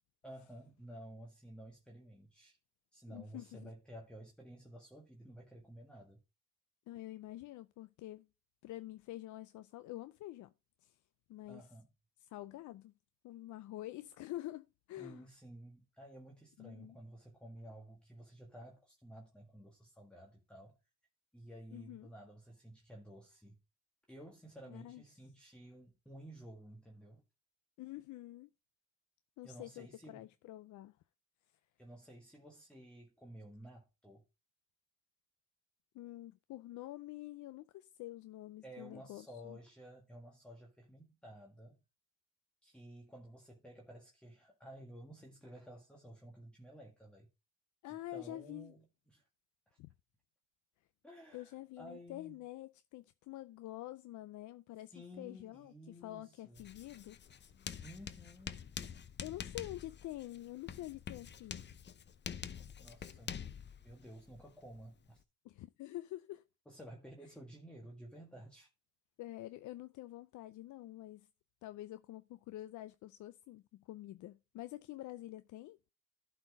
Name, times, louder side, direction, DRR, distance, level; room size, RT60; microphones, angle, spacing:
voice 1, 0.2-2.6 2.9-6.2 11.5-11.9 15.0-20.8 21.3-23.6 24.1-27.2 29.4-30.3 31.8-34.2 38.6-41.8 42.6-47.3 47.8-49.2 49.7-49.8 51.0-52.4 54.9-56.6 57.8-58.6 62.8-63.4 63.8-65.2 66.6-68.7, right 1 dB, 5° left, 1.7 m, -53 dB
voice 2, 3.1-3.7 6.9-8.3 8.6-10.5 10.8-11.0 11.3-11.7 12.2-12.9 13.2-15.3 16.6-17.0 21.7-22.1 24.7-25.0 27.8-28.5 29.4-31.0 35.9-39.6 47.8-48.7 49.8-49.9 51.3-57.7 59.2-61.7 65.4-66.4 69.2-71.3 71.6-75.9, left 15 dB, 80° left, 0.5 m, -47 dB
Writing, 56.6-65.2, left 7 dB, 35° left, 0.7 m, -47 dB
11.5 x 4.4 x 4.8 m
cardioid pair, 90°, 30 cm